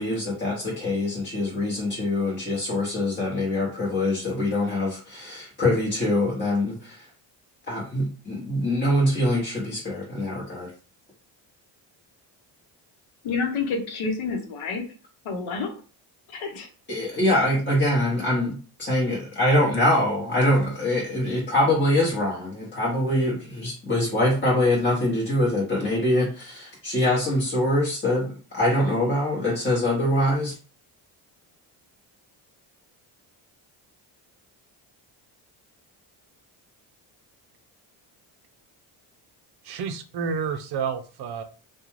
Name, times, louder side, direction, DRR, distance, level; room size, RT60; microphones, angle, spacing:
voice 1, 0.0-7.1 7.7-10.7 16.9-30.5, left 1 dB, 20° left, -6 dB, 1.0 m, -24 dB
voice 2, 13.2-14.9 15.2-15.8 16.3-16.7, left 4 dB, 70° left, 4 dB, 0.8 m, -29 dB
voice 3, 39.6-41.4, right 6 dB, 55° right, 8 dB, 0.6 m, -30 dB
2.4 x 2.3 x 3.0 m, 0.37 s
supercardioid pair, 65°, 49 cm